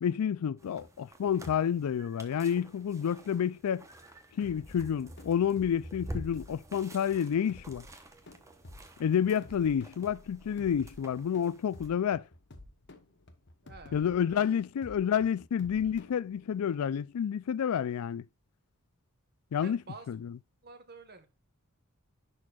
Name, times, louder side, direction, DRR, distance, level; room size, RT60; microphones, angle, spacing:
voice 1, 0.0-3.8 4.4-7.8 9.0-12.2 13.9-18.2 19.5-19.8 20.1-20.3, left 8 dB, 85° left, 0.4 m, -29 dB
sound 1, 0.6-11.9, right 1 dB, 15° right, 0.9 m, -48 dB
sound 2, 4.4-16.7, left 2 dB, 55° left, 1.0 m, -53 dB
voice 2, 13.6-14.5 19.6-20.1 20.6-21.3, right 4 dB, 50° right, 1.3 m, -49 dB
10.5 x 4.4 x 2.4 m
head